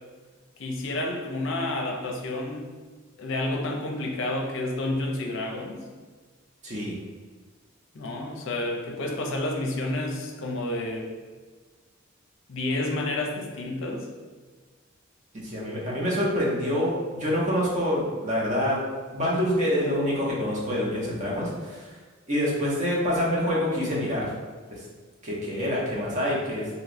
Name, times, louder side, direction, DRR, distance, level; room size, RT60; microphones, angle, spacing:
voice 1, 0.6-2.6 3.2-5.8 7.9-11.1 12.5-14.1, left 2 dB, 65° left, 1 dB, 0.5 m, -30 dB
voice 2, 6.6-6.9 15.3-18.8 19.1-21.9 22.3-24.3 24.7-24.8 25.2-26.7, equal, 35° right, -5 dB, 0.8 m, -26 dB
3.0 x 2.9 x 2.5 m, 1.4 s
head